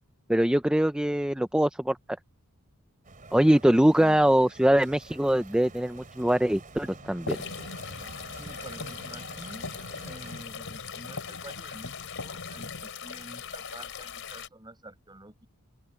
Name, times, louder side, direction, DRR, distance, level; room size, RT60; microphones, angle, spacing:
voice 1, 0.3-2.0 3.3-7.4, right 1 dB, 5° right, 0.5 m, -23 dB
Bicycle, 3.0-10.5, right 2 dB, 40° right, 3.6 m, -48 dB
voice 2, 3.9-4.4 8.4-9.7 10.0-15.5, right 1 dB, 20° right, 7.8 m, -47 dB
sound 1, 6.8-12.9, left 2 dB, 75° left, 4.3 m, -43 dB
sound 2, 7.3-14.5, left 7 dB, 60° left, 4.4 m, -41 dB
open air
head